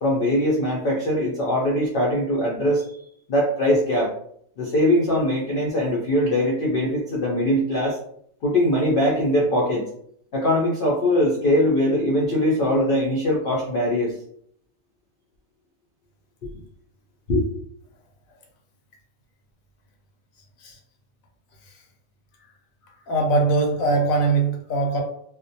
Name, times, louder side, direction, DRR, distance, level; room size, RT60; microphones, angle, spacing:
voice 1, 0.0-3.0 3.3-4.1 4.6-8.0 8.4-9.9 10.3-14.1 17.3-17.5, left 1 dB, 65° left, -3 dB, 0.5 m, -21 dB
voice 2, 22.8-25.0, right 3 dB, 80° left, 1 dB, 1.0 m, -22 dB
2.4 x 2.1 x 2.6 m, 0.67 s
omnidirectional pair, 1.5 m